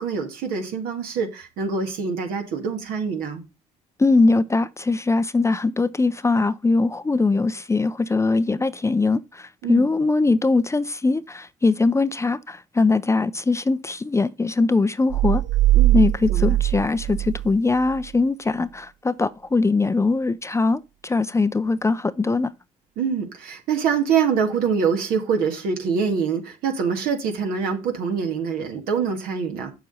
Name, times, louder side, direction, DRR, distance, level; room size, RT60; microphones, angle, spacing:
voice 1, 0.0-3.4 9.6-9.9 15.7-16.0 16.3-16.6 23.0-29.7, right 6 dB, 70° right, 1.8 m, -25 dB
voice 2, 4.0-15.4 15.9-22.5, left 3 dB, 20° left, 0.5 m, -21 dB
sound 1, 15.1-18.1, right 15 dB, 50° right, 0.4 m, -20 dB
7.2 x 6.8 x 3.9 m
hypercardioid pair, 55°, 16 cm